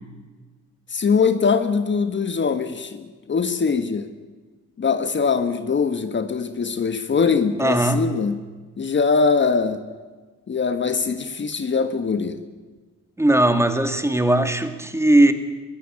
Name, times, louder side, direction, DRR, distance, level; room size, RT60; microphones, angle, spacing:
voice 1, 0.9-4.1 4.8-8.3 8.8-9.8 10.5-12.4, left 5 dB, 40° left, 9 dB, 1.6 m, -22 dB
voice 2, 7.6-8.1 13.2-15.3, right 1 dB, 10° right, 8 dB, 2.1 m, -18 dB
22.5 x 16.0 x 8.9 m, 1.4 s
cardioid pair, 90°, 30 cm